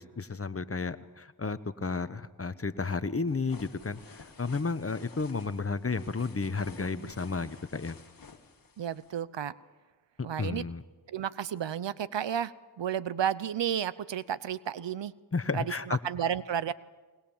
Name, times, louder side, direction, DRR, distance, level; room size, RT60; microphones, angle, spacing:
voice 1, 0.0-4.0 4.4-8.0 10.4-10.8 15.3-16.0, left 4 dB, 30° left, 13 dB, 1.1 m, -32 dB
sound 1, 3.3-9.2, left 4 dB, 45° left, 2.0 m, -52 dB
voice 2, 8.8-9.5 10.2-10.6 11.1-12.5 12.8-15.1 15.5-16.7, right 9 dB, 65° right, 18 dB, 0.8 m, -32 dB
21.5 x 20.5 x 7.3 m, 1.3 s
cardioid pair, 45°, 47 cm